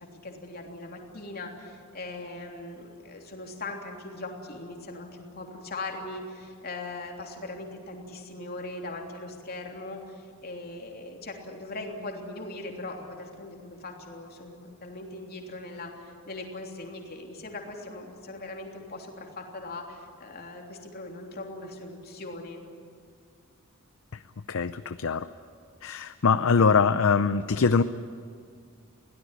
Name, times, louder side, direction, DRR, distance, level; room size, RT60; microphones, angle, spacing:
voice 1, 0.2-22.6, left 2 dB, 45° left, 1 dB, 3.3 m, -40 dB
voice 2, 24.5-25.3 25.8-27.8, left 5 dB, 65° left, 11 dB, 0.6 m, -23 dB
23.0 x 17.0 x 10.0 m, 2.2 s
head